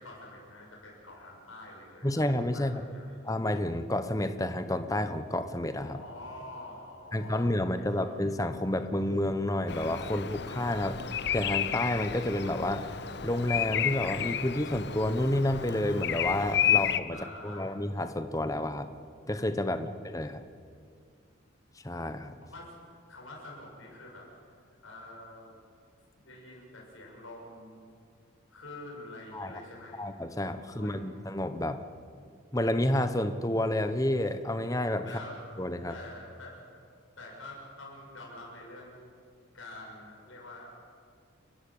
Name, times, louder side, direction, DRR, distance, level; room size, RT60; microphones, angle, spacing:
voice 1, 0.0-3.1 5.8-8.0 17.1-17.7 19.7-19.9 22.4-22.7 23.1-24.3 24.8-25.5 26.2-27.8 28.5-30.0 30.6-31.2 35.0-35.4 35.9-36.6 37.2-39.1 39.5-40.8, left 2 dB, 80° left, -2 dB, 7.1 m, -47 dB
voice 2, 2.0-2.8 3.2-6.0 7.1-11.0 11.3-12.9 13.2-17.2 17.4-18.9 19.3-20.4 21.8-22.3 29.3-29.5 29.9-31.8 32.5-35.2 35.6-35.9, left 1 dB, 15° left, 10 dB, 1.0 m, -30 dB
Bird vocalization bird call bird song, 9.7-17.0, left 9 dB, 55° left, 0.8 m, -31 dB
29.5 x 15.5 x 8.7 m, 2.2 s
head